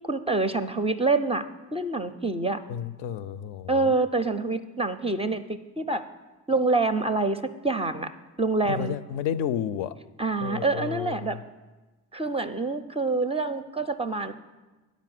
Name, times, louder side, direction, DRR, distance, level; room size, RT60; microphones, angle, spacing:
voice 1, 0.0-1.4 1.7-2.6 3.7-6.0 6.5-8.1 8.4-9.0 10.2-11.4 12.1-14.3, right 3 dB, 15° right, 9 dB, 0.4 m, -26 dB
voice 2, 2.7-3.9 8.7-10.0 10.4-11.2, left 9 dB, 65° left, 13 dB, 0.5 m, -31 dB
8.9 x 5.1 x 7.7 m, 1.2 s
hypercardioid pair, 45°, 45 cm